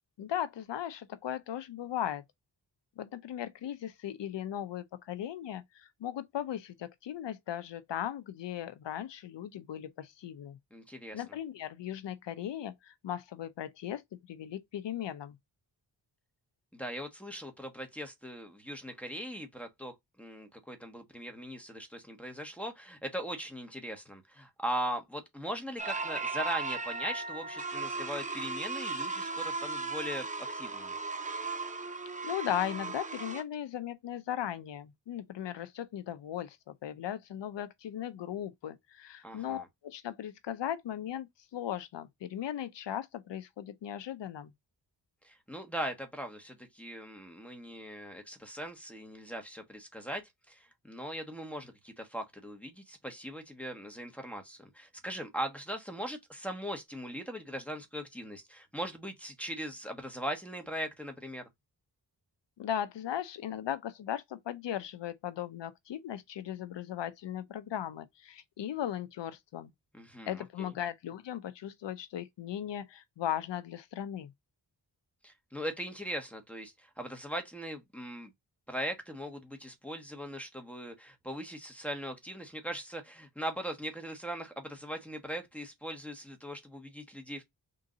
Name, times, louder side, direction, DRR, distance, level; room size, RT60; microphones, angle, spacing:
voice 1, 0.2-2.2 3.0-10.6 11.1-14.0 14.3-15.4 32.2-44.5 62.6-69.7 70.3-74.3, left 10 dB, 75° left, 0.6 m, -37 dB
voice 2, 10.7-11.4 16.7-31.0 39.2-39.7 45.2-61.5 69.9-70.7 75.2-78.3 78.7-87.4, equal, 5° left, 1.1 m, -40 dB
sound 1, 25.8-33.4, right 3 dB, 15° right, 0.7 m, -36 dB
3.8 x 2.6 x 3.8 m
cardioid pair, 60°, 44 cm